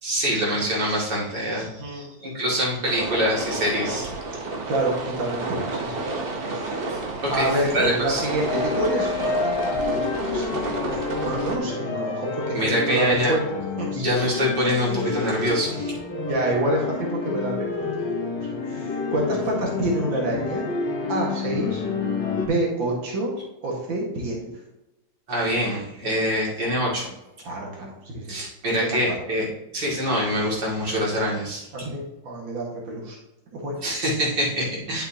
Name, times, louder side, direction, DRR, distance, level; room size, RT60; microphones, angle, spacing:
voice 1, 0.0-4.1 7.2-8.3 12.5-13.3 13.9-15.9 25.3-27.1 28.3-29.5 29.7-31.7 33.8-35.0, equal, 65° right, -5 dB, 3.1 m, -25 dB
voice 2, 1.8-2.4 4.7-6.1 6.5-6.8 7.3-13.4 13.8-14.0 16.3-17.7 18.0-18.4 18.7-20.7 21.1-21.8 22.4-24.5 27.4-28.4 28.8-29.0 31.7-33.2 33.5-33.7, right 1 dB, 80° right, -3 dB, 2.5 m, -28 dB
sound 1, 2.8-11.6, right 3 dB, 35° right, 1.0 m, -31 dB
sound 2, 8.4-22.5, left 4 dB, 70° left, 1.8 m, -28 dB
10.5 x 6.9 x 2.9 m, 0.93 s
omnidirectional pair, 2.1 m